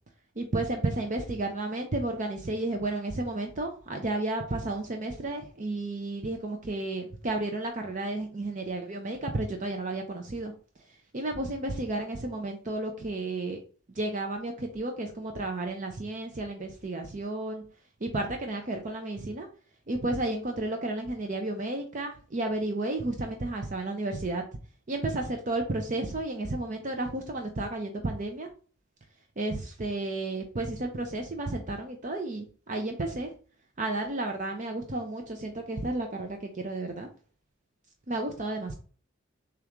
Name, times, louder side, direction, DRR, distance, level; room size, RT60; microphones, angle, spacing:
voice 1, 0.4-10.5 10.9-13.6 13.9-17.6 18.0-19.5 19.9-24.4 24.9-28.5 29.4-33.3 33.8-37.1 38.1-38.8, right 2 dB, 40° right, 4 dB, 0.6 m, -32 dB
6.7 x 2.5 x 3.0 m, 0.40 s
head